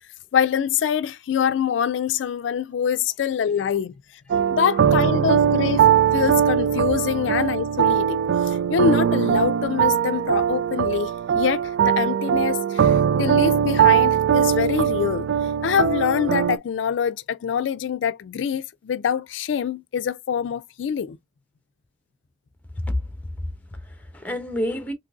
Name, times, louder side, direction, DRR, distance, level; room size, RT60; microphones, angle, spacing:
voice 1, 0.3-3.9 4.5-15.3 15.6-21.2, left 7 dB, 80° left, 0.3 m, -25 dB
sound 1, 4.3-16.6, right 8 dB, 80° right, 0.3 m, -20 dB
voice 2, 22.7-24.9, left 1 dB, 10° left, 0.8 m, -30 dB
3.8 x 3.3 x 2.3 m
head